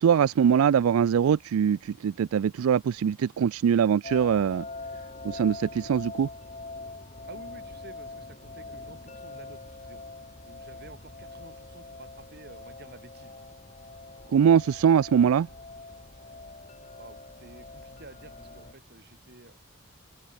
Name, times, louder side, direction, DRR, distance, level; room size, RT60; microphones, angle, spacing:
voice 1, 0.0-4.7 5.2-6.3 14.3-15.5, right 8 dB, 90° right, 0.3 m, -22 dB
sound 1, 4.0-18.7, left 3 dB, 35° left, 2.7 m, -43 dB
voice 2, 7.3-10.0 10.5-13.4 17.0-19.6, right 2 dB, 50° right, 3.5 m, -50 dB
open air
head